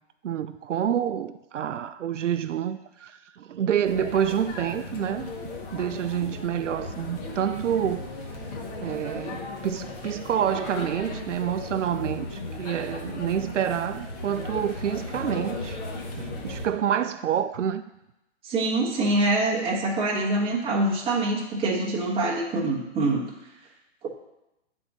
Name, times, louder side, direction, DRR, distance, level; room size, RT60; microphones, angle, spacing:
voice 1, 0.2-5.3 5.7-8.1 8.8-15.8 16.2-17.8, right 9 dB, 90° right, 0.5 m, -28 dB
sound 1, 3.8-16.7, left 2 dB, 35° left, 1.0 m, -36 dB
voice 2, 18.4-23.2 24.0-24.1, right 2 dB, 15° right, 1.0 m, -25 dB
8.7 x 3.6 x 4.0 m
hypercardioid pair, 135°, 36 cm